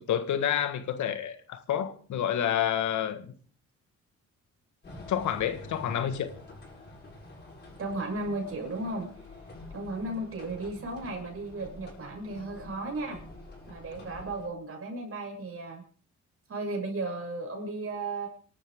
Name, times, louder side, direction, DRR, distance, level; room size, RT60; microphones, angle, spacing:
voice 1, 0.1-3.3 5.1-6.3, left 10 dB, 70° left, 1.6 m, -29 dB
sound 1, 4.8-14.5, left 2 dB, 35° left, 6.9 m, -47 dB
voice 2, 7.8-9.1 9.7-13.2 13.7-15.8 16.5-18.3, right 2 dB, 50° right, 6.8 m, -35 dB
27.0 x 12.5 x 3.6 m
cardioid pair, 90°, 30 cm